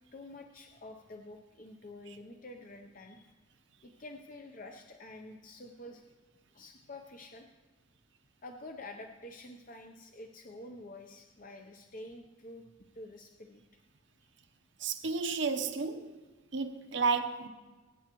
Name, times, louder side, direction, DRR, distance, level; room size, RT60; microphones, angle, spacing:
voice 1, 0.1-3.3 3.8-6.0 6.5-7.5 8.4-12.6 12.9-13.6, left 2 dB, 40° left, 0.7 m, -48 dB
voice 2, 14.8-16.2 16.5-17.5, right 5 dB, 65° right, 0.9 m, -32 dB
23.0 x 9.4 x 3.0 m
head